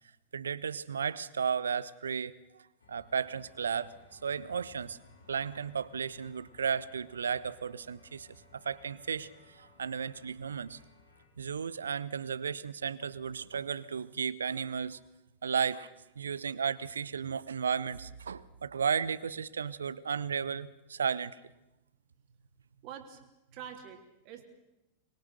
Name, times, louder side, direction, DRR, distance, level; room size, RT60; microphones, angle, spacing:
voice 1, 0.3-5.0 5.3-10.8 11.4-15.0 15.4-21.4, right 6 dB, 70° right, 19 dB, 0.8 m, -34 dB
sound 1, 2.8-11.3, left 3 dB, 75° left, 5.3 m, -60 dB
voice 2, 22.8-23.2 23.5-24.4, right 8 dB, 45° right, 5 dB, 3.3 m, -46 dB
25.0 x 22.0 x 6.6 m, 0.92 s
figure-of-eight pair, 90°, 0 cm